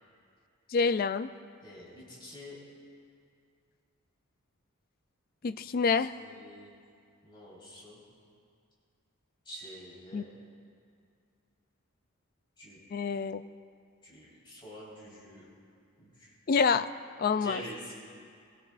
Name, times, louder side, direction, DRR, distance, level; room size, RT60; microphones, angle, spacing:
voice 1, 0.7-1.3 5.4-6.1 10.1-10.2 12.9-13.4 16.5-16.9 17.2-17.6, left 5 dB, 40° left, 13 dB, 0.3 m, -27 dB
voice 2, 1.6-2.5 6.2-6.7 7.2-8.0 9.4-10.3 12.6-12.8 14.0-15.4 16.0-16.3 17.4-17.9, equal, 20° left, -8 dB, 4.1 m, -46 dB
22.5 x 16.5 x 2.5 m, 2.3 s
head